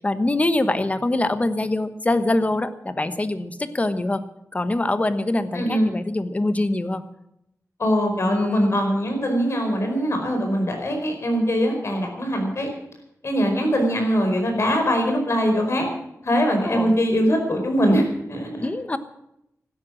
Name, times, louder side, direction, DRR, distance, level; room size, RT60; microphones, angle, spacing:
voice 1, 0.0-4.2 4.5-7.0 8.2-8.8 16.6-17.0 18.6-19.0, left 2 dB, 25° left, 12 dB, 1.1 m, -24 dB
voice 2, 5.5-5.9 7.8-12.7 13.2-15.9 16.2-18.7, equal, 55° left, 3 dB, 4.8 m, -22 dB
16.5 x 12.5 x 6.3 m, 0.81 s
wide cardioid pair, 130°, 6 cm